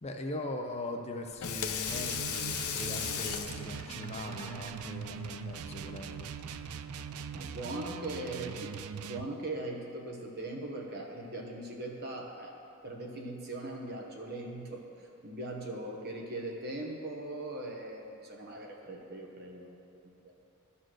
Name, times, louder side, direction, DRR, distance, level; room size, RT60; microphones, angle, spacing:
voice 1, 0.0-6.3, left 2 dB, 30° left, 4 dB, 0.5 m, -40 dB
Water tap faucet / Sink (filling or washing), 1.2-6.7, left 7 dB, 85° left, 0.6 m, -38 dB
sound 1, 1.8-9.3, right 7 dB, 85° right, 0.3 m, -41 dB
voice 2, 7.3-8.7 9.0-12.6 12.8-20.4, right 2 dB, 45° right, 0 dB, 1.1 m, -40 dB
12.5 x 4.3 x 6.3 m, 2.6 s
head